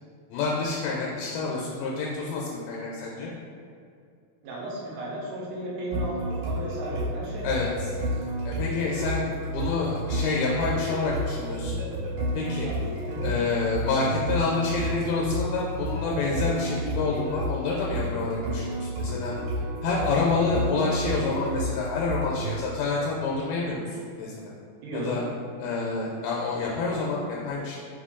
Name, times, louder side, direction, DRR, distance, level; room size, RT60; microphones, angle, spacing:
voice 1, 0.3-3.3 7.4-7.9 8.5-11.8 12.3-12.7 13.2-19.3 19.8-24.3 24.9-25.2 25.6-27.8, left 3 dB, 80° left, -3 dB, 2.2 m, -28 dB
voice 2, 4.4-7.5 12.6-12.8 13.1-13.3 24.8-25.2, right 1 dB, 80° right, -5 dB, 2.4 m, -35 dB
sound 1, 5.9-22.6, equal, 60° right, 2.4 m, -31 dB
5.6 x 2.3 x 3.6 m, 2.3 s
omnidirectional pair, 4.2 m